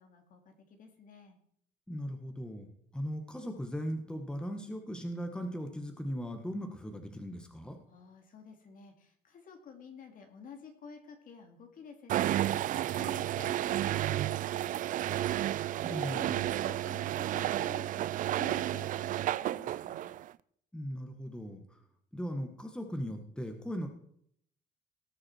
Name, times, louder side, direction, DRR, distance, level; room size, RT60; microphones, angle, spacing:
voice 1, 0.0-1.4 7.9-15.3 15.8-20.2, left 6 dB, 55° left, 4 dB, 2.4 m, -52 dB
voice 2, 1.9-7.8 15.8-16.4 20.7-21.8 22.1-23.9, equal, 5° left, 5 dB, 1.5 m, -38 dB
sound 1, 12.1-20.3, right 13 dB, 50° right, 0.4 m, -32 dB
18.0 x 6.2 x 4.5 m, 0.66 s
cardioid pair, 110°, 17 cm